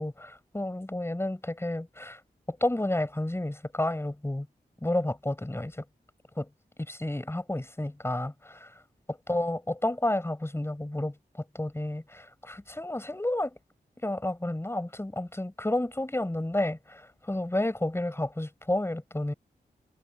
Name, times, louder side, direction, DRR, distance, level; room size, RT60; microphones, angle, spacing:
voice 1, 0.0-2.2 2.5-4.5 4.8-5.8 6.4-6.5 6.9-8.7 9.3-11.1 11.5-13.5 14.0-19.3, left 1 dB, 15° left, 8.0 m, -31 dB
wide cardioid pair, 95°, 16 cm